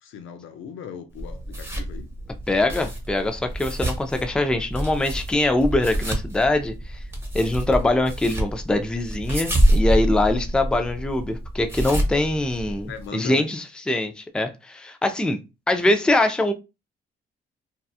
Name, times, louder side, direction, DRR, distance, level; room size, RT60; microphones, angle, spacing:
voice 1, 0.0-2.1 12.8-13.5, left 8 dB, 80° left, 0.5 m, -38 dB
sound 1, 1.1-13.1, right 1 dB, 10° right, 0.9 m, -27 dB
voice 2, 2.5-7.0 7.3-15.4 15.7-16.5, left 2 dB, 5° left, 0.3 m, -23 dB
2.7 x 2.3 x 2.3 m
cardioid pair, 90°, 20 cm